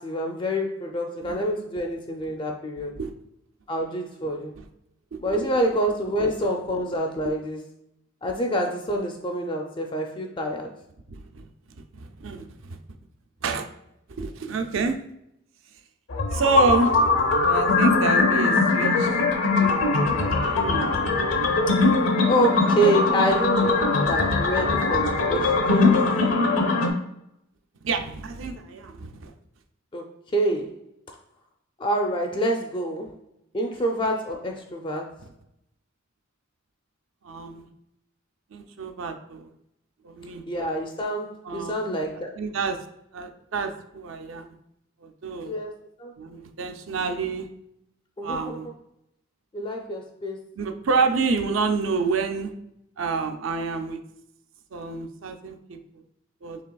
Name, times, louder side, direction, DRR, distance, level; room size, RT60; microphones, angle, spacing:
voice 1, 0.0-3.0 3.7-4.5 5.2-7.7 8.2-10.7 21.7-21.8 22.3-26.0 29.9-30.7 31.8-33.2 33.5-35.2 40.5-42.4 45.4-45.7 46.0-46.1 48.2-48.6 49.5-50.4, right 1 dB, 25° left, 2 dB, 0.4 m, -27 dB
voice 2, 11.1-11.5 11.8-12.8 13.4-13.7 14.1-15.0 16.3-16.9 17.5-19.2 20.1-21.0 27.8-29.3 37.2-37.7 38.5-39.5 40.0-40.4 41.4-41.8 42.4-42.8 43.1-44.6 45.0-45.5 46.2-47.5 48.2-48.7 50.6-52.5 53.0-54.0 54.7-55.8 56.4-56.6, right 4 dB, 70° right, 6 dB, 0.5 m, -28 dB
sound 1, 16.1-26.9, left 3 dB, 85° left, 0.7 m, -21 dB
5.7 x 3.3 x 2.3 m, 0.79 s
head